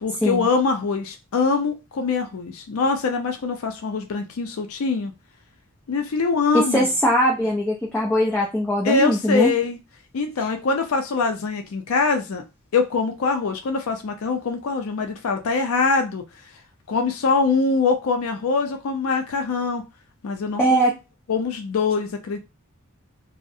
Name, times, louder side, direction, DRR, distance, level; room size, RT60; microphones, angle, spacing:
voice 1, 0.0-5.1 5.9-6.9 8.8-9.8 10.1-12.4 12.7-16.2 16.9-19.8 20.2-20.8 21.3-22.4, left 4 dB, 80° left, 0.4 m, -23 dB
voice 2, 6.5-9.5 20.6-20.9, equal, 10° left, 0.4 m, -20 dB
2.4 x 2.0 x 2.6 m
head